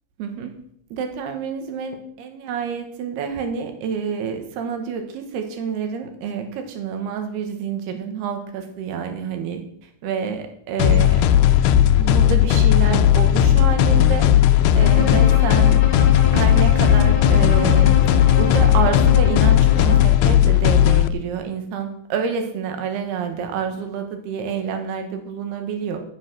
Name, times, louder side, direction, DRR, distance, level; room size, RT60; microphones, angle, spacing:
voice 1, 0.2-0.5 0.9-9.6 10.0-11.6 12.0-14.3 14.8-15.8 16.3-26.0, right 6 dB, 85° right, 6 dB, 3.5 m, -28 dB
sound 1, 10.8-21.1, left 11 dB, 85° left, 2.6 m, -15 dB
Bowed string instrument, 14.8-20.2, left 6 dB, 60° left, 2.8 m, -27 dB
15.0 x 7.5 x 6.2 m, 0.69 s
omnidirectional pair, 4.5 m